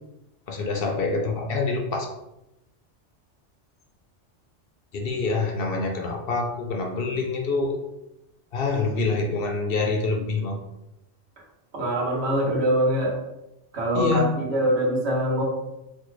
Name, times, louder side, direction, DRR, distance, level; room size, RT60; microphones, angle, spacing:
voice 1, 0.5-2.1 4.9-7.8 8.5-10.6 13.9-14.4, left 3 dB, 60° left, 2 dB, 0.7 m, -26 dB
voice 2, 11.7-13.1 13.7-15.4, right 1 dB, 65° right, -2 dB, 1.2 m, -23 dB
4.2 x 2.2 x 3.1 m, 0.90 s
omnidirectional pair, 1.2 m